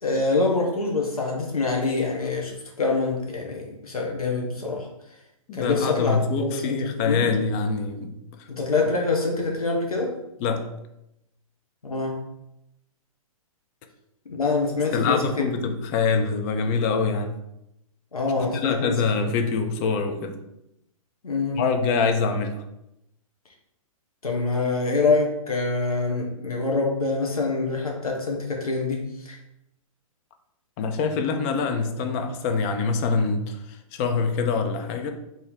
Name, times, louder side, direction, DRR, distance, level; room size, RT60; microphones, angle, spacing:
voice 1, 0.0-4.9 5.5-6.8 7.1-7.3 8.5-10.2 11.8-12.2 14.3-15.5 18.1-19.0 21.2-21.6 24.2-29.4, left 3 dB, 85° left, 0 dB, 0.7 m, -25 dB
voice 2, 5.5-8.1 8.4-8.5 10.4-10.7 14.9-17.3 18.4-20.4 21.5-22.6 30.8-35.1, left 4 dB, 25° left, 6 dB, 0.4 m, -25 dB
3.0 x 2.7 x 3.8 m, 0.84 s
figure-of-eight pair, 125°, 18 cm